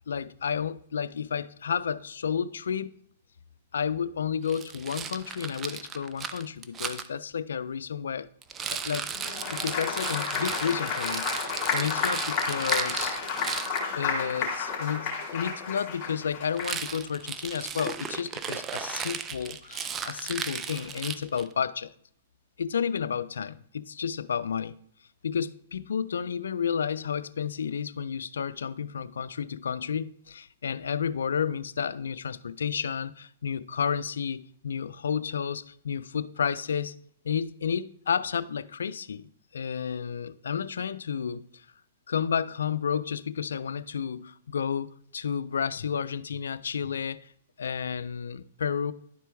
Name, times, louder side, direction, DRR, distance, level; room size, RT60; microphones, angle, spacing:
voice 1, 0.1-3.0 3.7-8.3 8.7-9.1 9.5-13.2 13.9-21.9 22.6-24.7 25.2-36.9 37.2-41.7 42.1-47.3 47.6-48.9, left 7 dB, 85° left, 0.3 m, -31 dB
Rattle, 4.5-7.1 8.4-13.8 16.5-21.5, right 7 dB, 20° right, 0.4 m, -36 dB
Applause, 9.1-16.9, left 5 dB, 30° left, 2.3 m, -31 dB
11.0 x 4.6 x 3.4 m
hypercardioid pair, 130°, 0 cm